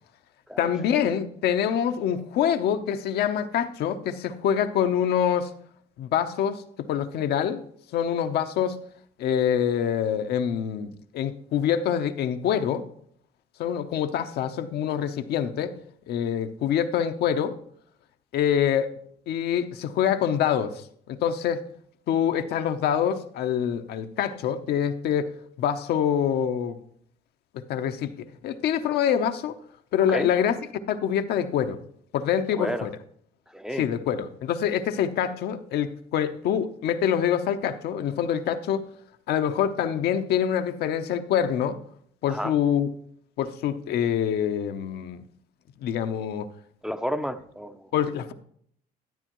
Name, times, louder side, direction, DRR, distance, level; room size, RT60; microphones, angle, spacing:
voice 1, 0.6-5.5 6.0-7.6 7.9-8.8 9.2-12.9 13.6-15.7 16.1-17.6 18.3-18.9 19.3-20.8 21.1-21.6 22.1-25.3 25.6-26.8 27.5-29.5 29.9-30.6 30.9-31.8 32.1-32.9 33.8-38.8 39.3-41.8 42.2-42.9 43.4-45.2 45.8-46.5 47.9-48.3, left 9 dB, 75° left, 8 dB, 0.8 m, -25 dB
voice 2, 32.6-32.9 33.5-33.8 42.3-42.5 46.8-47.9, equal, 5° right, 7 dB, 0.5 m, -30 dB
12.5 x 8.9 x 3.0 m, 0.65 s
cardioid pair, 110°, 17 cm